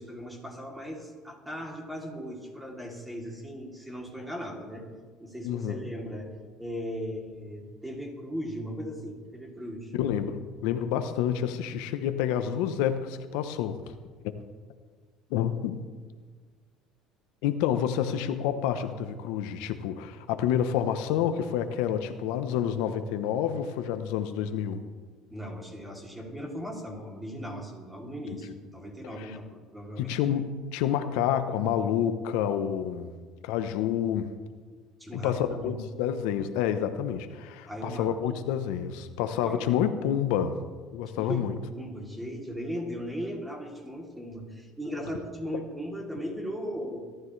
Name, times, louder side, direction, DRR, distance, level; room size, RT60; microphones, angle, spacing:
voice 1, 0.0-4.9 5.2-6.3 6.6-9.9 25.3-30.2 35.0-35.9 37.7-38.4 39.4-39.6 41.1-47.0, equal, 5° right, 0 dB, 3.0 m, -37 dB
voice 2, 5.4-5.8 10.0-13.8 14.2-14.3 15.3-15.8 17.4-24.8 28.3-28.4 29.2-29.3 30.0-33.1 33.4-34.3 35.1-40.6 40.9-41.5, left 9 dB, 80° left, 9 dB, 0.9 m, -28 dB
22.0 x 12.5 x 3.3 m, 1.5 s
cardioid pair, 120°, 0 cm